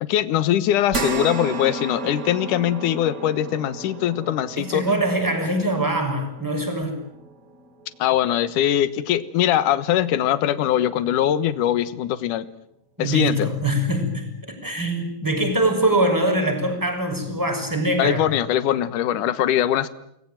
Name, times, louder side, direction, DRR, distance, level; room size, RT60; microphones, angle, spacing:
voice 1, 0.0-5.0 8.0-12.5 13.0-13.5 18.0-19.9, left 11 dB, 75° left, 14 dB, 2.7 m, -22 dB
sound 1, 0.9-9.5 10.0-10.1 11.5-11.6, right 2 dB, 30° right, 2.7 m, -34 dB
voice 2, 4.6-7.0 13.0-18.2, right 1 dB, 5° right, 5 dB, 6.3 m, -23 dB
30.0 x 20.5 x 9.3 m, 0.78 s
omnidirectional pair, 3.8 m